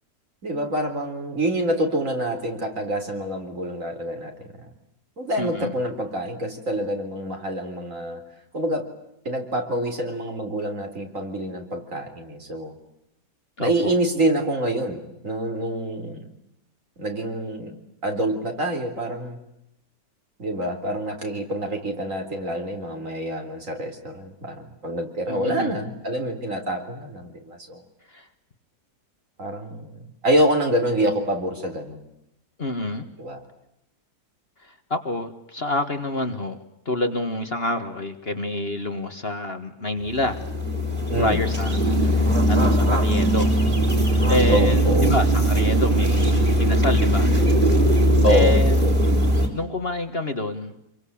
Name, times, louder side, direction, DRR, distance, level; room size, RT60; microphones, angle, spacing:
voice 1, 0.4-4.3 4.6-4.7 5.2-8.2 8.5-8.9 9.3-12.7 13.6-16.3 17.0-17.7 18.0-19.4 20.4-27.8 29.4-32.0 33.2-33.4 41.1-41.4 44.5-45.2 48.2-48.6, right 1 dB, 50° right, 4 dB, 4.1 m, -26 dB
voice 2, 5.4-5.7 13.6-13.9 25.3-25.8 28.1-28.3 32.6-33.1 34.6-36.6 36.9-40.4 41.2-43.6 44.3-47.3 48.3-48.8 49.5-50.8, left 2 dB, 35° left, 7 dB, 1.8 m, -27 dB
sound 1, 40.1-49.5, equal, 30° right, 4.8 m, -19 dB
27.5 x 23.0 x 8.7 m, 0.82 s
omnidirectional pair, 1.8 m